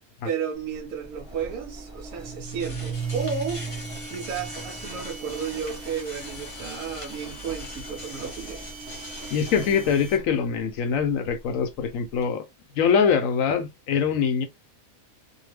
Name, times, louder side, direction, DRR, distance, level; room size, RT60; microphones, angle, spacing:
voice 1, 0.2-3.6 4.1-8.7, right 6 dB, 75° right, 1.0 m, -33 dB
Engine, 0.5-12.2, right 2 dB, 5° right, 0.9 m, -43 dB
sound 1, 2.2-9.7, right 3 dB, 25° left, 0.9 m, -37 dB
sound 2, 2.9-10.2, right 1 dB, 30° right, 1.0 m, -45 dB
voice 2, 9.3-12.4 12.7-14.5, left 6 dB, 75° left, 0.9 m, -23 dB
2.7 x 2.2 x 3.2 m
omnidirectional pair, 1.5 m